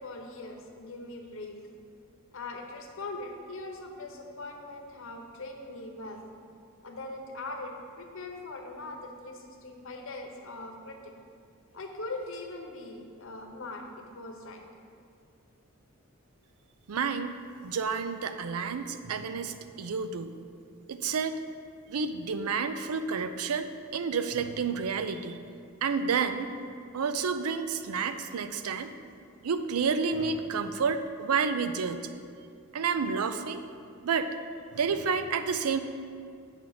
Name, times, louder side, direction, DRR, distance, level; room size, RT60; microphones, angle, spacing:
voice 1, 0.0-1.6 2.3-6.2 6.8-11.1 11.7-14.6, left 2 dB, 60° left, 3 dB, 0.9 m, -41 dB
voice 2, 16.9-17.3 17.6-20.3 20.9-21.3 21.9-25.4 25.8-26.5 26.9-28.9 29.4-32.1 32.7-33.6 34.0-34.3 34.7-35.8, right 5 dB, 90° right, 10 dB, 0.5 m, -30 dB
8.5 x 6.1 x 4.0 m, 2.3 s
head